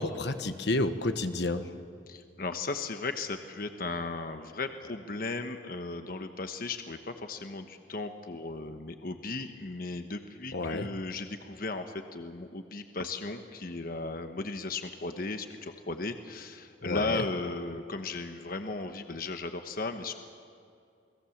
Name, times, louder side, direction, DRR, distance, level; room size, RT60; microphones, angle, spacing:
voice 1, 0.0-1.7 10.5-10.9 16.8-17.2, left 2 dB, 70° left, 9 dB, 1.2 m, -30 dB
voice 2, 2.1-20.1, left 3 dB, 50° left, 7 dB, 1.1 m, -36 dB
29.0 x 20.5 x 7.3 m, 2.4 s
head